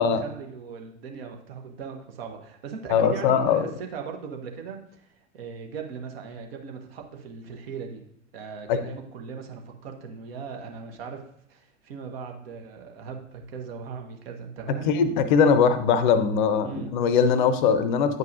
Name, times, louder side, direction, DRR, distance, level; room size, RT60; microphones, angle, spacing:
voice 1, 0.0-5.1 5.3-8.0 8.3-11.2 11.5-14.9 16.6-16.9, right 6 dB, 50° right, 3 dB, 1.1 m, -39 dB
voice 2, 2.9-3.6 8.7-8.8 14.9-18.2, left 6 dB, 40° left, 11 dB, 0.6 m, -21 dB
9.2 x 5.3 x 2.6 m, 0.68 s
figure-of-eight pair, 95°, 37 cm